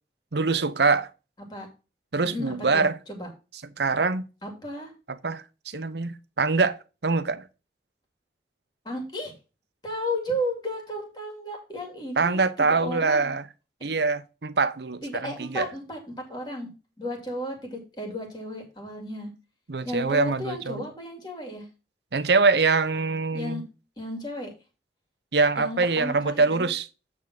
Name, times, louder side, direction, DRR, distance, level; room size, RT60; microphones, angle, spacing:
voice 1, 0.3-1.1 2.1-3.0 3.8-4.2 5.1-7.5 12.2-13.4 13.8-15.7 19.7-20.8 22.1-23.6 25.3-26.9, right 4 dB, 75° right, 0.8 m, -24 dB
voice 2, 2.3-3.3 4.4-4.9 8.8-9.3 9.8-13.3 15.0-16.7 17.0-19.3 19.8-21.7 23.3-23.6 24.0-24.5 25.6-26.7, equal, 25° left, 2.3 m, -34 dB
8.7 x 3.6 x 5.9 m
head